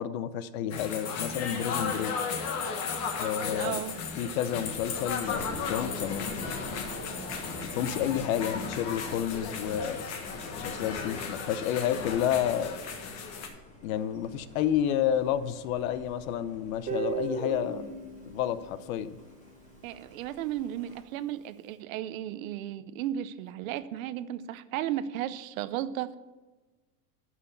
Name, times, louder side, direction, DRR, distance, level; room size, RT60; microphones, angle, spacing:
voice 1, 0.0-2.2 3.2-3.8 4.2-6.4 7.7-10.1 10.6-12.8 13.8-17.9 18.3-19.2, left 10 dB, 60° left, 14 dB, 0.8 m, -30 dB
sound 1, 0.7-13.5, left 5 dB, 35° left, 1.4 m, -35 dB
Thunder, 3.2-21.0, left 1 dB, 15° left, 2.1 m, -46 dB
voice 2, 3.6-4.0 19.8-26.2, right 12 dB, 60° right, 14 dB, 0.8 m, -34 dB
Guitar, 16.9-19.8, right 5 dB, 15° right, 1.2 m, -36 dB
11.0 x 5.9 x 6.9 m, 1.2 s
supercardioid pair, 150°, 47 cm